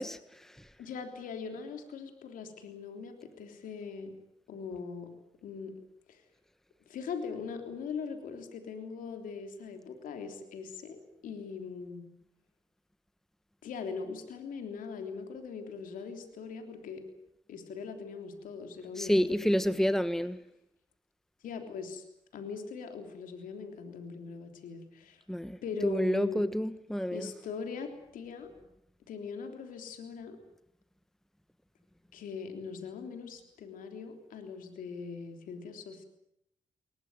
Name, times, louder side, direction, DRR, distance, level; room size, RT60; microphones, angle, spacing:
voice 1, 0.0-0.7 19.0-20.4 25.3-27.3, equal, 5° left, 13 dB, 1.3 m, -29 dB
voice 2, 0.8-4.2 4.5-5.1 5.4-5.7 6.1-6.2 6.9-12.0 13.6-17.0 17.5-19.9 21.4-22.1 22.3-25.2 25.6-26.5 27.1-28.5 29.1-30.4 32.1-36.0, left 5 dB, 80° left, 5 dB, 3.3 m, -41 dB
21.0 x 21.0 x 9.2 m, 0.79 s
supercardioid pair, 45°, 14 cm